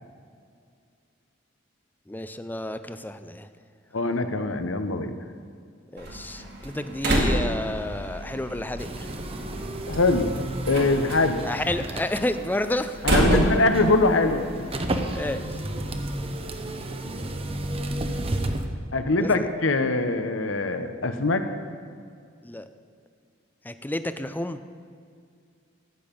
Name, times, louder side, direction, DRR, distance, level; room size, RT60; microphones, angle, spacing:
voice 1, 2.1-3.5 5.9-9.1 11.4-13.1 15.1-15.4 19.2-19.4 22.4-22.6 23.6-24.6, left 1 dB, 10° left, 10 dB, 0.5 m, -30 dB
voice 2, 3.9-5.2 9.9-10.3 10.7-11.4 13.0-14.7 18.9-21.4, left 2 dB, 75° left, 8 dB, 1.0 m, -23 dB
Slam, 6.0-15.4, right 1 dB, 55° right, 2.0 m, -29 dB
sound 1, 8.8-18.7, right 1 dB, 30° right, 0.8 m, -32 dB
13.5 x 8.9 x 5.4 m, 2.2 s
head